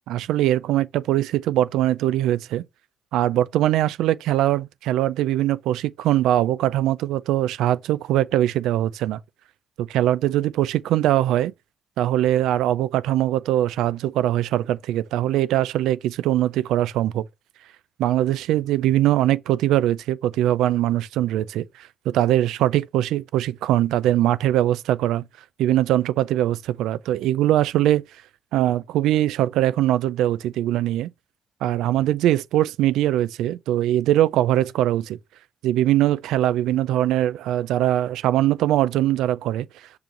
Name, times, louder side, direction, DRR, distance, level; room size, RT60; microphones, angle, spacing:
voice 1, 0.1-2.6 3.1-9.2 9.8-11.5 12.0-17.2 18.0-25.2 25.6-28.0 28.5-31.1 31.6-35.2 35.6-39.7, right 13 dB, 85° right, 0.4 m, -21 dB
6.8 x 3.1 x 5.3 m
hypercardioid pair, 40°, 0 cm